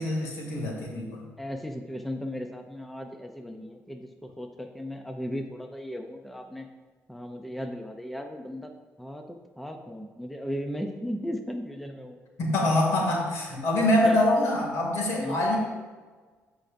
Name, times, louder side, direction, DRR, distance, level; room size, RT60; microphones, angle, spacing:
voice 1, 0.0-1.2 12.4-15.6, left 1 dB, 75° left, -1 dB, 2.3 m, -25 dB
voice 2, 1.4-4.1 4.4-6.7 7.1-8.7 9.0-12.2 13.6-13.7 14.0-14.2 15.2-15.4, equal, ahead, 4 dB, 0.5 m, -36 dB
14.0 x 5.1 x 2.6 m, 1.4 s
cardioid pair, 155°, 5 cm